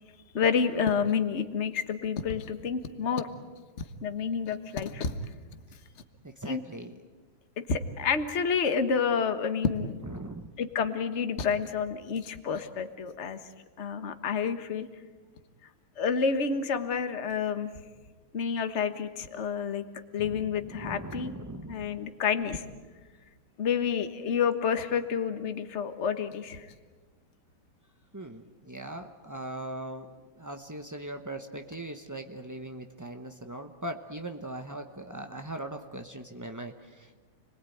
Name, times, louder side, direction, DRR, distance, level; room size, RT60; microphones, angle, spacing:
voice 1, 0.3-3.3 4.0-5.2 6.5-6.6 7.6-9.9 10.6-13.4 13.8-14.9 16.0-17.7 18.3-19.8 20.1-21.3 21.7-22.6 23.6-26.7, left 6 dB, 35° left, 8 dB, 1.5 m, -29 dB
voice 2, 6.2-7.0 10.0-10.5 20.2-20.4 20.7-21.9 28.1-37.2, right 1 dB, 25° right, 5 dB, 0.4 m, -40 dB
30.0 x 21.0 x 9.3 m, 1.4 s
omnidirectional pair, 2.3 m